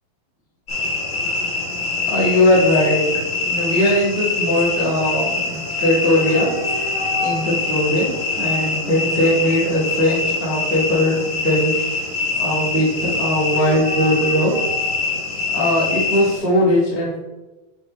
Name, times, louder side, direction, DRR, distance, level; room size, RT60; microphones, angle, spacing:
sound 1, 0.7-16.4, left 3 dB, 55° left, 0.8 m, -24 dB
voice 1, 2.1-3.0 3.4-6.5 7.2-11.7 12.4-14.6 15.5-17.2, left 1 dB, 30° left, -7 dB, 1.0 m, -19 dB
10.0 x 3.7 x 3.2 m, 1.1 s
omnidirectional pair, 4.3 m